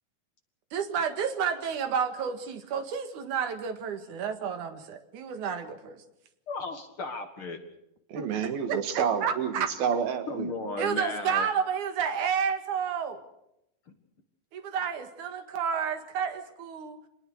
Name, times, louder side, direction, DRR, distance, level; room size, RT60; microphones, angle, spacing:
voice 1, 0.7-6.0 8.2-8.3 8.7-9.7 10.8-13.2 14.5-17.0, right 7 dB, 60° right, 7 dB, 3.1 m, -30 dB
voice 2, 6.5-7.6 10.3-11.5, left 3 dB, 45° left, 6 dB, 2.1 m, -35 dB
voice 3, 8.1-10.5, right 7 dB, 90° right, 7 dB, 3.8 m, -29 dB
26.0 x 20.0 x 6.5 m, 0.82 s
omnidirectional pair, 4.1 m